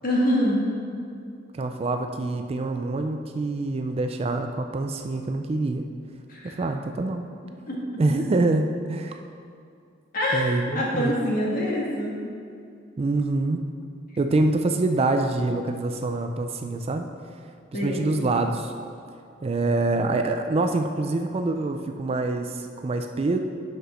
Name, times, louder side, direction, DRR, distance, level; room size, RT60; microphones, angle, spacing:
voice 1, 0.0-0.6 6.3-6.5 7.7-7.8 10.1-10.5 10.7-12.1 17.7-18.1, equal, 50° left, -4 dB, 1.7 m, -25 dB
voice 2, 1.5-5.9 6.4-7.2 8.0-9.2 10.3-11.1 13.0-13.7 14.2-17.1 17.8-18.7 19.4-23.4, right 2 dB, 30° right, 6 dB, 0.3 m, -25 dB
6.0 x 5.5 x 5.6 m, 2.4 s
head